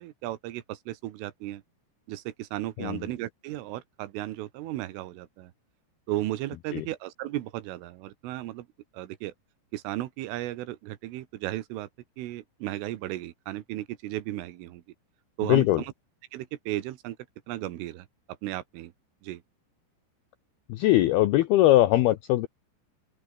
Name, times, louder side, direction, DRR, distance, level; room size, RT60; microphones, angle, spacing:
voice 1, 0.0-1.6 2.1-5.5 6.1-8.7 8.9-9.3 9.7-11.9 12.2-14.8 15.4-15.9 16.3-17.2 17.5-18.1 18.4-18.9 19.2-19.4, right 15 dB, 85° right, 4.0 m, -35 dB
voice 2, 15.5-15.8 20.7-22.5, left 15 dB, 80° left, 2.2 m, -21 dB
open air
omnidirectional pair, 5.6 m